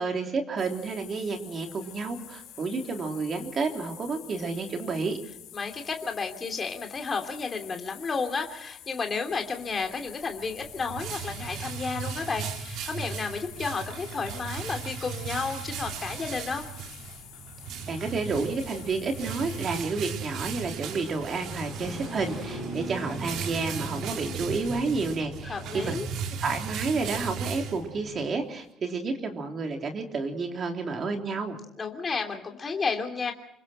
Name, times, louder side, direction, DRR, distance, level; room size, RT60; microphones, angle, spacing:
voice 1, 0.0-5.2 17.9-26.0 26.4-31.6, right 4 dB, 25° right, 3 dB, 3.3 m, -30 dB
sound 1, 0.6-19.7, left 11 dB, 55° left, 4.7 m, -47 dB
voice 2, 5.5-16.6 25.4-26.1 31.8-33.3, left 4 dB, 20° left, 3 dB, 3.0 m, -32 dB
sound 2, 9.3-28.3, equal, 5° right, 6.8 m, -43 dB
sound 3, 10.4-28.2, right 7 dB, 55° right, 2.5 m, -37 dB
27.5 x 24.0 x 4.4 m, 0.79 s
cardioid pair, 180°, 0 cm